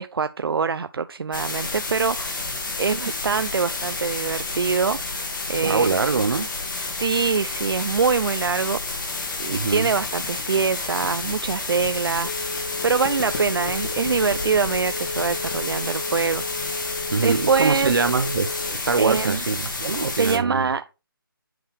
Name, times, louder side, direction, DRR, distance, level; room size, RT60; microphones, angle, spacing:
voice 1, 0.0-2.5 2.8-6.0 6.8-9.1 9.4-16.4 17.2-17.9 19.0-19.4 20.2-20.9, right 5 dB, 85° right, 0.4 m, -24 dB
sound 1, 1.3-20.4, left 3 dB, 55° left, 1.9 m, -30 dB
voice 2, 5.6-6.5 9.5-9.9 17.1-18.5 18.9-20.7, right 4 dB, 65° right, 0.8 m, -23 dB
Telephone, 11.7-19.0, left 3 dB, 15° left, 0.7 m, -34 dB
7.8 x 3.3 x 4.6 m
figure-of-eight pair, 160°, 12 cm